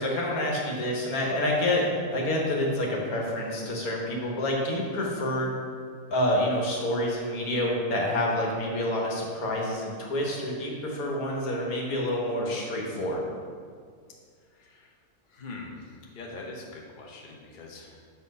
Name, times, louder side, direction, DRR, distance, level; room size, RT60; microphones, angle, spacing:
voice 1, 0.0-5.5 6.1-13.2, left 1 dB, 75° left, -1 dB, 1.6 m, -28 dB
voice 2, 14.5-14.9 15.3-18.0, left 3 dB, 40° left, -1 dB, 0.9 m, -43 dB
6.5 x 4.3 x 5.3 m, 2.1 s
omnidirectional pair, 1.6 m